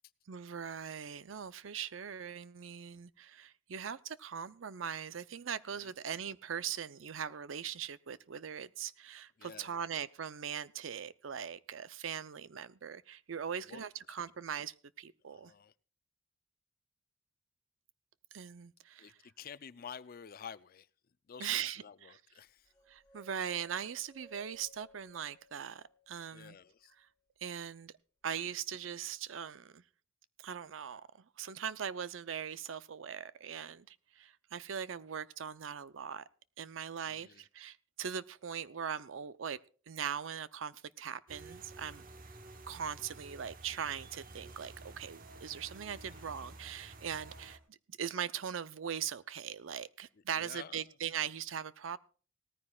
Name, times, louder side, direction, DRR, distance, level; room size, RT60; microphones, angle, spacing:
voice 1, 0.3-15.5 18.3-19.1 21.4-21.8 22.1-22.2 22.9-26.6 27.4-27.9 28.2-29.8 30.4-36.2 36.6-39.6 39.9-42.0 42.7-52.0, right 8 dB, 80° right, 0.6 m, -40 dB
voice 2, 9.4-9.8 13.6-13.8 15.3-15.7 19.0-20.9 21.3-22.7 26.3-26.9 37.0-37.4 46.0-46.2 50.1-50.9, left 7 dB, 50° left, 0.5 m, -50 dB
sound 1, 22.7-26.8, right 3 dB, 15° left, 4.9 m, -61 dB
sound 2, 41.3-47.6, right 2 dB, 45° right, 1.1 m, -52 dB
18.5 x 14.0 x 2.4 m
head